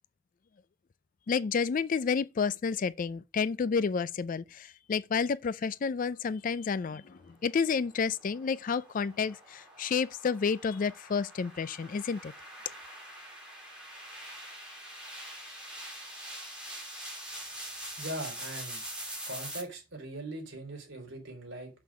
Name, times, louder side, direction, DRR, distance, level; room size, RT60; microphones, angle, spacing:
voice 1, 1.3-12.3, left 5 dB, 40° left, 0.3 m, -30 dB
sound 1, 7.5-19.6, right 1 dB, 5° right, 3.0 m, -44 dB
voice 2, 18.0-18.8 19.3-21.7, right 1 dB, 60° right, 3.5 m, -40 dB
6.7 x 5.7 x 6.0 m
head